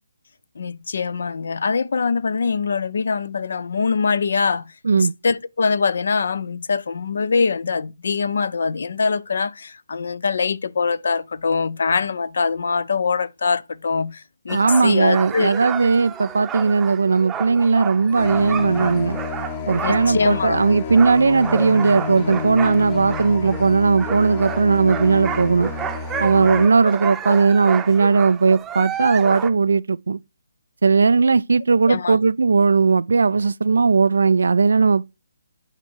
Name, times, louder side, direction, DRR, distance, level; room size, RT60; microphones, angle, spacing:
voice 1, 0.6-15.5 19.8-20.6 31.9-32.2, left 5 dB, 60° left, 0.6 m, -23 dB
sound 1, 14.5-23.7 24.0-29.5, right 8 dB, 10° right, 0.7 m, -31 dB
voice 2, 14.5-19.2 19.7-25.7 26.2-30.2 30.8-35.1, right 4 dB, 65° right, 0.3 m, -17 dB
sound 2, 18.1-26.7, left 5 dB, 30° left, 1.0 m, -29 dB
8.8 x 4.5 x 4.5 m
figure-of-eight pair, 145°, 0 cm